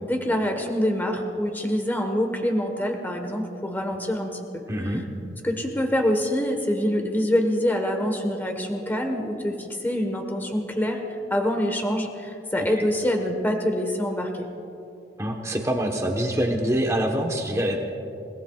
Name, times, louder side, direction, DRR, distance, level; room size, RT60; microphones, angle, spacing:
voice 1, 0.0-5.0 5.4-14.5, equal, 10° left, 3 dB, 1.2 m, -25 dB
voice 2, 4.7-5.0 15.2-17.8, right 1 dB, 15° right, 1 dB, 1.1 m, -25 dB
29.0 x 18.0 x 2.4 m, 2.8 s
head